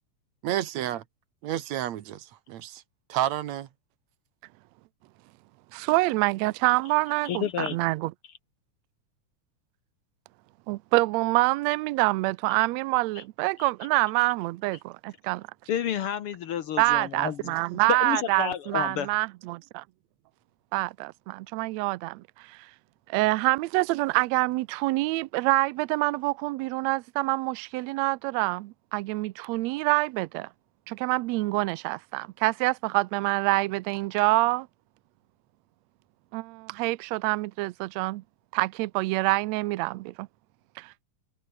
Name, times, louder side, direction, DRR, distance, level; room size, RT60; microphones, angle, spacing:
voice 1, 0.4-1.0 1.4-2.8 3.1-3.7, right 12 dB, 65° right, 2.4 m, -30 dB
voice 2, 5.7-8.1 10.7-15.5 16.8-19.8 20.7-22.7 23.1-30.5 30.9-34.7 36.3-38.2 38.5-40.3 40.8-40.9, right 22 dB, 80° right, 1.6 m, -26 dB
voice 3, 7.2-7.8 13.6-13.7 15.7-17.6 17.9-19.1, left 9 dB, 65° left, 1.4 m, -30 dB
omnidirectional pair, 3.7 m